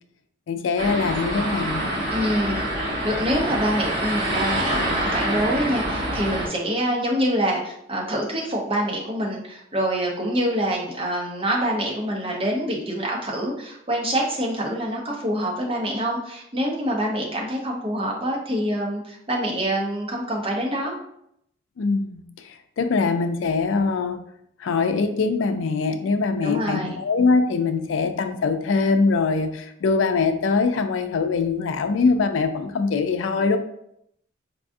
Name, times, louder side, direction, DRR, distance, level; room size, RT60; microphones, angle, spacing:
voice 1, 0.5-2.0 21.8-24.2 24.6-33.6, left 4 dB, 85° left, 8 dB, 0.4 m, -23 dB
sound 1, 0.8-6.5, right 1 dB, 50° right, 1.1 m, -26 dB
voice 2, 2.1-20.9 26.4-27.0, equal, 30° right, -1 dB, 0.7 m, -26 dB
4.7 x 2.4 x 2.6 m, 0.73 s
head